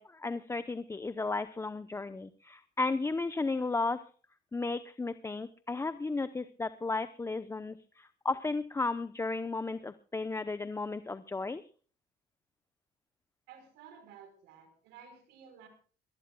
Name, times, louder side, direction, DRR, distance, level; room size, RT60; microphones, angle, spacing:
voice 1, 0.0-4.0 4.5-11.6, left 3 dB, 15° left, 12 dB, 0.7 m, -34 dB
voice 2, 13.5-15.7, right 7 dB, 90° right, 9 dB, 5.0 m, -54 dB
23.5 x 18.5 x 2.3 m, 0.40 s
cardioid pair, 110°, 17 cm